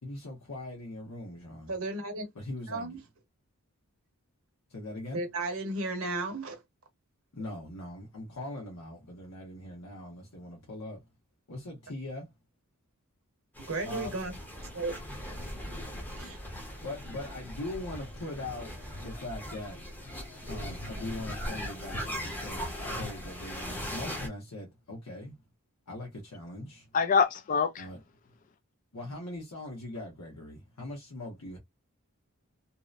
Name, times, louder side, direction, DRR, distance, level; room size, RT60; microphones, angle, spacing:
voice 1, 0.0-1.7 2.3-3.0 4.7-5.2 7.3-11.0 11.5-12.3 13.8-14.2 16.8-19.8 20.4-25.4 25.9-26.9 27.8-28.0 28.9-31.6, left 1 dB, 90° left, 0.9 m, -41 dB
voice 2, 1.7-2.3 2.7-3.0 5.1-6.6 13.7-14.3 14.7-15.0 16.2-16.4, right 2 dB, 65° right, 0.9 m, -34 dB
sound 1, 13.5-24.3, equal, 10° left, 0.7 m, -39 dB
voice 3, 26.9-27.9, left 5 dB, 35° left, 0.3 m, -25 dB
2.8 x 2.0 x 2.4 m
head